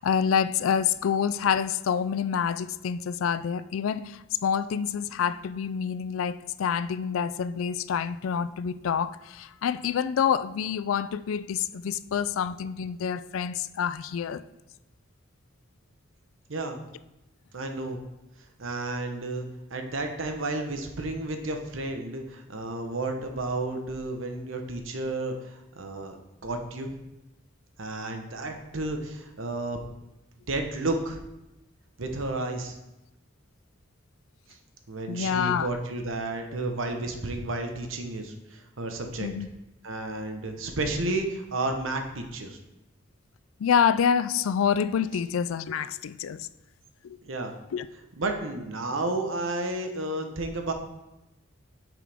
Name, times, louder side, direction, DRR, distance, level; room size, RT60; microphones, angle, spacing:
voice 1, 0.0-14.4 35.1-35.7 39.2-39.5 43.6-46.5 47.0-47.2 47.7-47.9, left 7 dB, 85° left, 0.4 m, -27 dB
voice 2, 16.5-16.8 17.5-18.0 18.6-26.2 26.4-27.0 27.8-29.8 30.5-31.2 32.0-32.8 34.9-39.3 39.8-42.6 47.2-47.5 48.2-50.7, right 2 dB, 75° right, 1.0 m, -32 dB
9.2 x 6.1 x 3.5 m
head